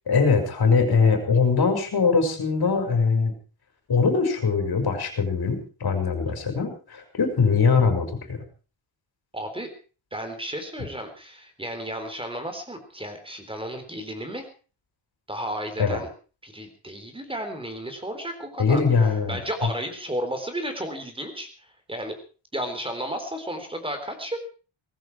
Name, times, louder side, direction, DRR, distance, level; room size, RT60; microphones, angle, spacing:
voice 1, 0.1-3.3 3.9-8.4 15.8-16.0 18.6-19.4, left 5 dB, 50° left, 5 dB, 5.5 m, -22 dB
voice 2, 9.3-9.7 10.1-14.5 15.3-16.1 16.4-18.8 19.3-22.2 22.5-24.5, equal, 10° right, 7 dB, 3.8 m, -33 dB
19.0 x 15.0 x 4.8 m, 0.37 s
wide cardioid pair, 135°, 49 cm